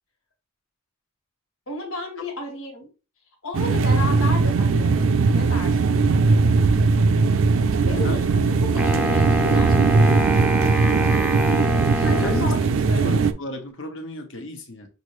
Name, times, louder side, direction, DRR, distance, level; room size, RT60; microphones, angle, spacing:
voice 1, 1.7-2.9 3.4-6.1 7.9-10.3 12.0-12.6 12.9-13.2, left 2 dB, 90° left, 1.8 m, -33 dB
sound 1, 3.5-13.3, right 4 dB, 70° right, 0.4 m, -19 dB
Wind instrument woodwind instrument, 8.8-13.0, right 1 dB, 5° right, 0.5 m, -25 dB
voice 2, 12.2-12.5 13.0-14.9, left 1 dB, 65° left, 1.1 m, -33 dB
5.9 x 2.7 x 3.1 m
head